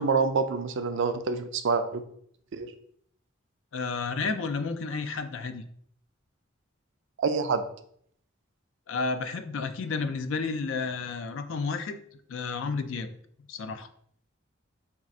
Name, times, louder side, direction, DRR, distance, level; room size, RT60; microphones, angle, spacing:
voice 1, 0.0-2.0 2.5-2.7 7.2-7.6, right 4 dB, 60° right, 9 dB, 0.4 m, -26 dB
voice 2, 3.7-5.6 8.9-12.0 12.3-13.1 13.5-13.9, left 4 dB, 65° left, 9 dB, 0.4 m, -31 dB
3.6 x 2.5 x 4.2 m, 0.65 s
head